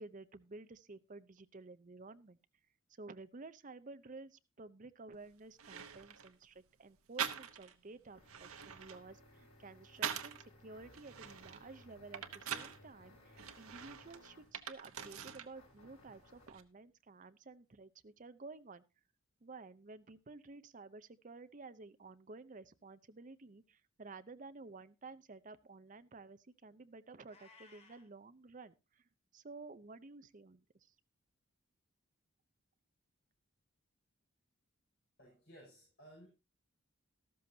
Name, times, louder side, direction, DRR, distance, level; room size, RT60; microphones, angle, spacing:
voice 1, 0.0-2.4 3.0-18.8 19.4-29.0 29.3-30.9, right 3 dB, 40° right, 12 dB, 0.6 m, -53 dB
sound 1, 5.1-5.2 5.6-6.3 7.2-7.8 8.2-10.5 10.9-12.8 13.4-15.5 15.8-16.6, right 8 dB, 90° right, 1.0 m, -44 dB
sound 2, 7.5-14.6 15.5-16.6, left 1 dB, 90° left, 4.7 m, -62 dB
Meow, 27.2-28.1, left 4 dB, 30° left, 2.2 m, -61 dB
voice 2, 35.2-36.3, equal, 50° left, -5 dB, 6.0 m, -58 dB
13.0 x 13.0 x 2.8 m, 0.27 s
head